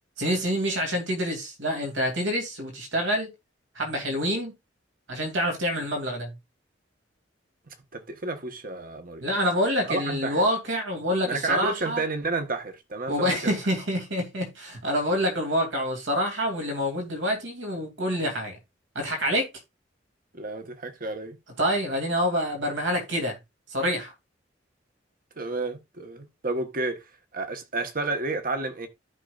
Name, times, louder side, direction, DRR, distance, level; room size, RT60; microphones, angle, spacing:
voice 1, 0.2-3.3 3.7-4.5 5.1-6.3 9.2-12.0 13.1-18.5 18.9-19.5 21.6-23.4 23.7-24.1, equal, 80° right, 2.8 m, -27 dB
voice 2, 7.7-9.3 9.8-10.4 11.2-13.6 20.3-21.4 25.4-27.0 27.3-28.9, right 3 dB, 50° right, 1.2 m, -31 dB
13.5 x 5.4 x 2.5 m
head